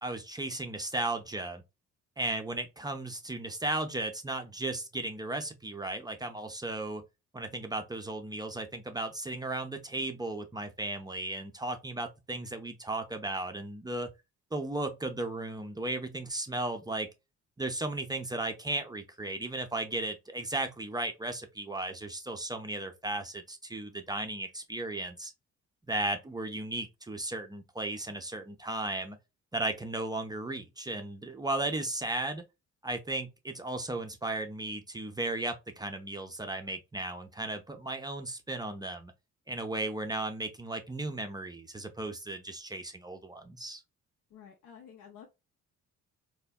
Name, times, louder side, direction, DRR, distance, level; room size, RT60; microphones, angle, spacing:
voice 1, 0.0-1.6 2.2-7.0 7.3-14.1 14.5-17.1 17.6-25.3 25.9-29.2 29.5-32.4 32.8-39.1 39.5-43.8, right 2 dB, 15° right, 0.4 m, -35 dB
voice 2, 44.3-45.3, left 8 dB, 70° left, 0.6 m, -51 dB
3.3 x 2.1 x 2.2 m
cardioid pair, 90°, 30 cm